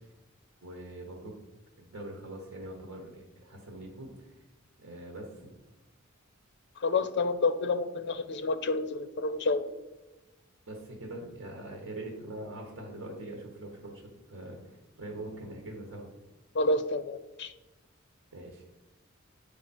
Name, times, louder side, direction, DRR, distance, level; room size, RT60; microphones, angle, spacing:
voice 1, 0.6-1.3 1.8-4.3 4.8-5.5 10.7-16.1 18.3-18.6, right 1 dB, 85° right, 1 dB, 1.3 m, -43 dB
voice 2, 6.8-9.7 16.5-17.5, left 3 dB, 55° left, 11 dB, 0.5 m, -29 dB
8.7 x 5.1 x 4.3 m, 1.1 s
head